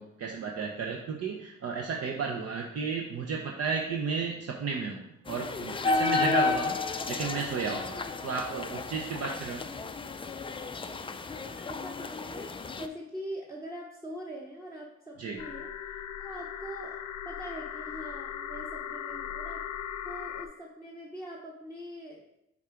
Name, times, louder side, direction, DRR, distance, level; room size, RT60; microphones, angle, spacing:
voice 1, 0.0-9.6 15.2-15.4, right 5 dB, 55° right, 0 dB, 0.8 m, -33 dB
sound 1, 5.3-12.9, left 4 dB, 20° left, 0.4 m, -32 dB
voice 2, 11.3-12.5 12.8-17.0 17.2-19.6 20.0-22.2, equal, 10° right, -3 dB, 1.0 m, -43 dB
sound 2, 15.4-20.5, left 9 dB, 75° left, 0.7 m, -38 dB
7.4 x 3.8 x 4.5 m, 0.84 s
cardioid pair, 90°, 30 cm